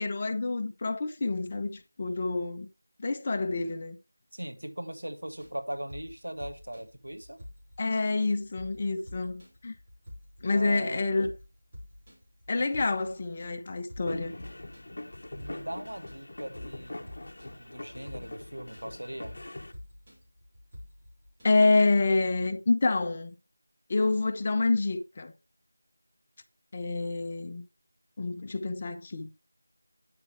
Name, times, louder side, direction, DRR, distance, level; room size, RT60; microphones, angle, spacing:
voice 1, 0.0-2.7 3.0-4.0 7.8-9.7 10.4-11.3 12.5-14.3 21.4-23.3 23.9-25.3 26.7-27.6 28.2-29.3, left 3 dB, 25° left, 0.6 m, -27 dB
voice 2, 4.3-7.4 10.5-11.1 15.3-17.1 17.4-19.4, right 1 dB, 85° right, 1.5 m, -39 dB
sound 1, 5.2-21.4, left 1 dB, 20° right, 3.4 m, -49 dB
sound 2, 14.1-19.7, left 1 dB, 55° left, 1.0 m, -42 dB
9.2 x 6.8 x 3.3 m
figure-of-eight pair, 175°, 0 cm